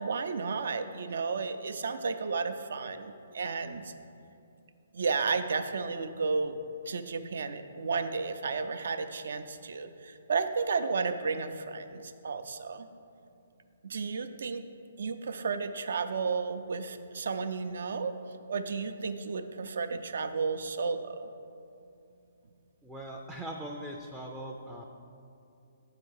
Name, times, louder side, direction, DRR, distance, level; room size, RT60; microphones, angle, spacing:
voice 1, 0.0-3.9 4.9-6.6 6.9-12.9 13.8-14.6 15.0-18.2 18.5-21.3, right 4 dB, 70° right, 9 dB, 0.5 m, -33 dB
voice 2, 22.8-24.8, right 1 dB, 5° right, -2 dB, 0.4 m, -40 dB
7.1 x 4.8 x 6.4 m, 2.7 s
hypercardioid pair, 160°, 0 cm